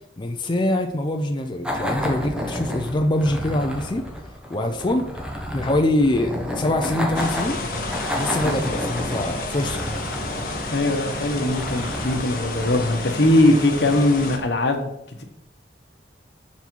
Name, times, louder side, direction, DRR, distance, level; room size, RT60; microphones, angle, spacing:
voice 1, 0.2-4.1 4.5-5.1 5.5-7.6 8.2-9.9, left 1 dB, 25° left, 4 dB, 0.5 m, -24 dB
sound 1, 1.6-13.8, equal, 5° right, 0.9 m, -31 dB
sound 2, 7.1-14.4, left 2 dB, 55° left, 1.1 m, -31 dB
voice 2, 10.7-14.9, left 1 dB, 75° left, 5 dB, 1.1 m, -20 dB
7.0 x 4.2 x 4.5 m, 0.77 s
head